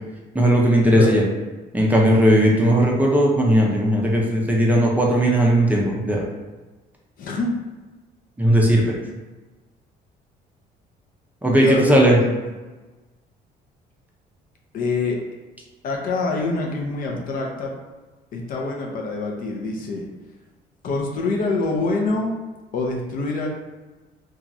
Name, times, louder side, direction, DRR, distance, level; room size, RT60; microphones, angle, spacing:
voice 1, 0.3-1.2 1.7-6.2 8.4-9.0 11.4-12.2, equal, 10° right, -3 dB, 0.5 m, -17 dB
voice 2, 7.2-7.5 11.6-12.4 14.7-15.2 15.8-17.7 18.3-20.1 20.8-22.3 22.7-23.5, left 3 dB, 55° left, 0 dB, 0.5 m, -25 dB
2.9 x 2.3 x 2.5 m, 1.2 s
cardioid pair, 110°, 17 cm